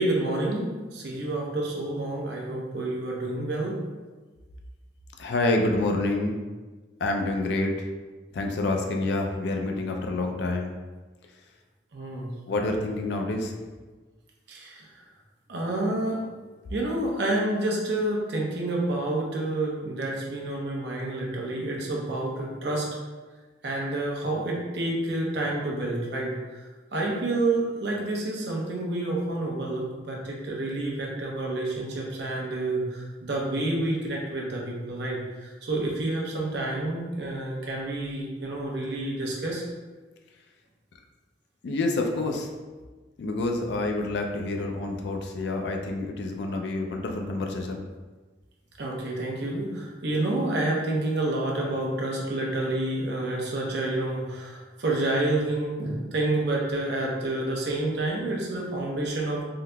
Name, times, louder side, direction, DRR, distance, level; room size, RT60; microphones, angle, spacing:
voice 1, 0.0-3.8 11.9-12.3 14.5-15.0 15.5-16.3 16.7-22.9 23.6-26.7 26.9-39.6 45.5-45.6 48.8-59.4, right 2 dB, 65° right, -2 dB, 0.7 m, -29 dB
voice 2, 5.2-6.4 7.0-7.9 8.3-10.8 12.5-13.5 41.6-42.5 43.2-47.9, left 2 dB, 65° left, 3 dB, 0.4 m, -28 dB
3.7 x 2.8 x 2.2 m, 1.3 s
head